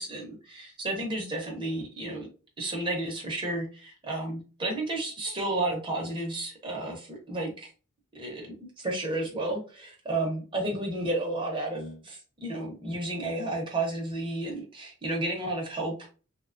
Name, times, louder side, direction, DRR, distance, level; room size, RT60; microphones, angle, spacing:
voice 1, 0.0-2.3 2.6-7.7 8.1-16.1, right 2 dB, 25° right, 1 dB, 0.5 m, -32 dB
2.9 x 2.1 x 2.4 m, 0.36 s
head